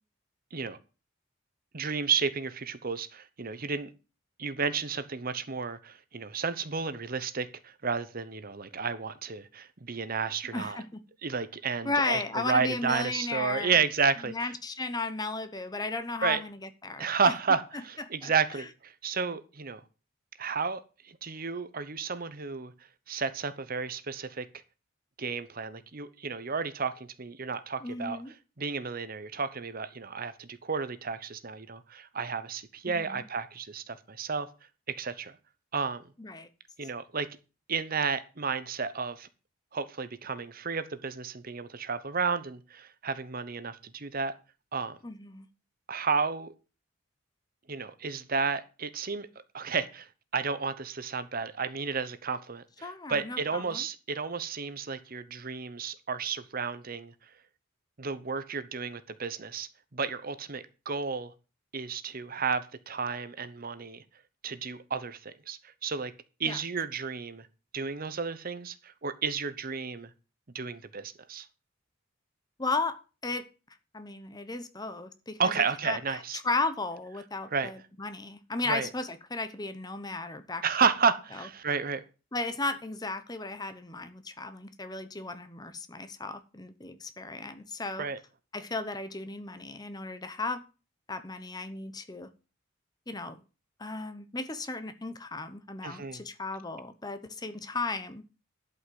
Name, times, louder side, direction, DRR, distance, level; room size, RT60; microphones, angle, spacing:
voice 1, 1.7-3.9 4.4-10.8 11.2-14.5 16.2-16.4 17.0-19.8 20.4-20.8 21.2-22.7 23.1-24.5 25.2-28.2 28.6-34.5 35.0-35.4 35.7-36.0 36.8-37.3 37.7-39.3 39.7-44.3 44.7-45.0 45.9-46.5 47.7-49.3 49.5-57.1 58.0-61.3 61.7-64.0 64.4-66.1 66.4-67.5 67.7-70.1 70.5-71.5 75.4-76.4 77.5-77.7 78.7-78.9 80.6-82.0 88.0-88.2 95.8-96.2, right 5 dB, 45° right, 0.9 m, -32 dB
voice 2, 10.5-11.0 11.8-13.8 14.2-17.1 18.0-18.6 27.8-28.3 32.9-33.2 36.2-36.5 45.0-45.5 52.8-53.8 66.4-66.6 72.6-73.4 73.9-75.5 75.8-80.6 81.3-81.5 82.3-88.1 88.5-90.6 91.1-92.3 93.1-93.4 93.8-98.2, left 3 dB, 20° left, 0.9 m, -35 dB
11.5 x 5.7 x 7.6 m
head